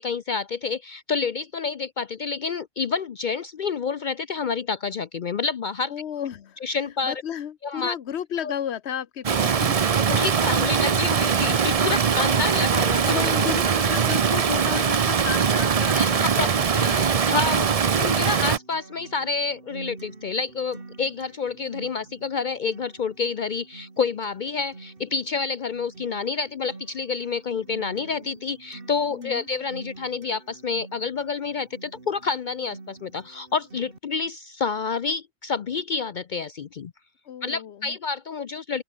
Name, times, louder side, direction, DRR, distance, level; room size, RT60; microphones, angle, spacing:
voice 1, 0.0-5.9 6.6-7.2 7.6-7.9 8.4-8.5 10.1-13.3 15.9-16.5 16.8-36.9 37.4-38.8, left 5 dB, 50° left, 0.7 m, -28 dB
voice 2, 5.9-6.6 7.0-9.8 13.0-17.0 29.1-29.4 37.3-38.0, left 9 dB, 85° left, 1.1 m, -33 dB
Stream, 9.2-18.6, right 6 dB, 40° right, 0.7 m, -21 dB
Acoustic guitar, 18.0-34.0, right 3 dB, 60° right, 2.6 m, -46 dB
open air
omnidirectional pair, 1.1 m